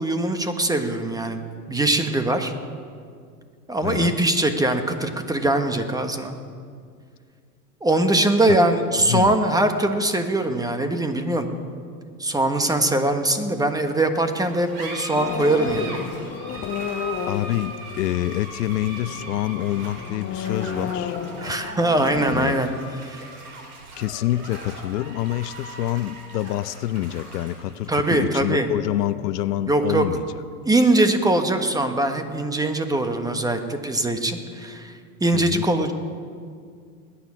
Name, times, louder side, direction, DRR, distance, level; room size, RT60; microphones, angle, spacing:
voice 1, 0.0-1.4 1.7-2.5 3.7-6.3 7.8-11.5 12.2-16.1 21.4-22.7 23.0-23.3 27.9-28.7 29.7-30.0 30.6-34.9 35.2-35.9, right 2 dB, 10° right, 7 dB, 1.2 m, -22 dB
voice 2, 3.8-4.3 8.4-8.6 9.1-9.4 17.3-21.2 22.3-22.8 24.0-30.4 35.3-35.7, left 14 dB, 75° left, 15 dB, 0.6 m, -27 dB
sound 1, 14.3-31.3, right 3 dB, 60° right, 4.3 m, -40 dB
sound 2, 15.1-22.5, left 8 dB, 25° left, 0.8 m, -32 dB
20.0 x 9.9 x 6.2 m, 2.1 s
hypercardioid pair, 105°, 48 cm